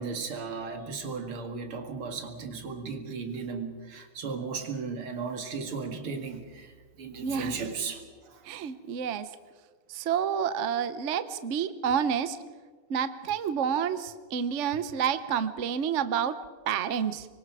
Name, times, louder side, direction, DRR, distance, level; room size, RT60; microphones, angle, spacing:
voice 1, 0.0-8.5, right 5 dB, 80° right, 2.8 m, -36 dB
voice 2, 7.2-7.6 8.5-9.3 9.9-12.4 12.9-16.4 16.7-17.3, right 8 dB, 50° right, 0.9 m, -29 dB
25.0 x 23.0 x 4.9 m
omnidirectional pair, 2.3 m